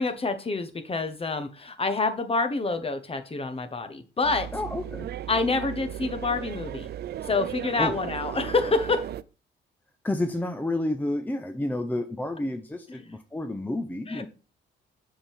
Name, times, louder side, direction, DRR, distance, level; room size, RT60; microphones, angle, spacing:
voice 1, 0.0-4.5 5.3-6.9 7.3-9.0 12.9-13.0 14.1-14.3, left 3 dB, 30° left, 8 dB, 1.1 m, -27 dB
sound 1, 4.2-9.2, right 11 dB, 55° right, 0.4 m, -36 dB
voice 2, 4.5-5.1 7.8-8.0 10.0-14.3, left 1 dB, 10° left, 7 dB, 0.7 m, -30 dB
6.9 x 5.7 x 3.5 m, 0.35 s
cardioid pair, 90°, 20 cm